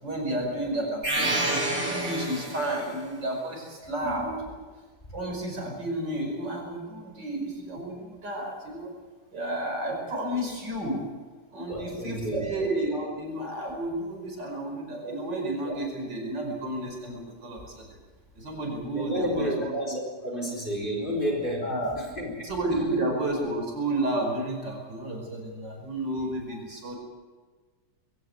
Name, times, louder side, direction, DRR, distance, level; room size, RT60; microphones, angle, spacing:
voice 1, 0.0-4.3 5.1-8.9 9.3-11.0 11.5-18.0 18.4-20.0 21.6-21.9 22.4-27.0, right 1 dB, 90° right, 2 dB, 5.9 m, -31 dB
sound 1, 1.0-2.9, right 1 dB, 50° right, 5.0 m, -28 dB
voice 2, 4.0-4.4 11.7-12.5 15.0-15.2 18.9-21.7 22.0-22.3 22.7-22.8 26.5-26.6, equal, 25° left, 0 dB, 5.0 m, -31 dB
21.5 x 17.0 x 8.0 m, 1.4 s
omnidirectional pair, 1.9 m